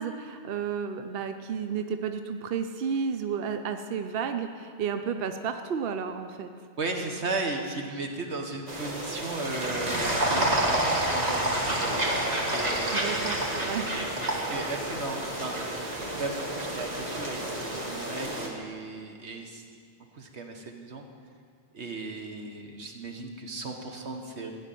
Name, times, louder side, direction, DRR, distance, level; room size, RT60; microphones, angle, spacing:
voice 1, 0.0-6.5 12.9-13.9, right 6 dB, 65° right, 7 dB, 0.8 m, -32 dB
voice 2, 6.8-11.9 12.5-13.5 13.9-19.6 20.1-21.0 21.7-24.5, right 3 dB, 90° right, 3 dB, 1.6 m, -36 dB
sound 1, 8.7-18.5, right 1 dB, 40° right, 1.7 m, -29 dB
15.5 x 6.3 x 9.1 m, 2.1 s
omnidirectional pair, 1.1 m